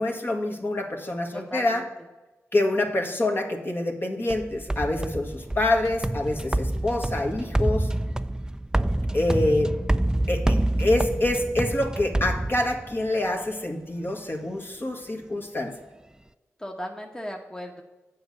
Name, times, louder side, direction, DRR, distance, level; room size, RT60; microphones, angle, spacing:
voice 1, 0.0-1.8 2.5-7.9 9.1-9.7 10.3-15.7, left 1 dB, 40° left, 3 dB, 1.5 m, -26 dB
voice 2, 1.3-1.9 16.6-17.8, equal, 10° left, 2 dB, 1.1 m, -37 dB
sound 1, 4.3-13.1, right 1 dB, 15° right, 0.4 m, -27 dB
7.7 x 5.3 x 6.8 m, 1.2 s
cardioid pair, 45°, 6 cm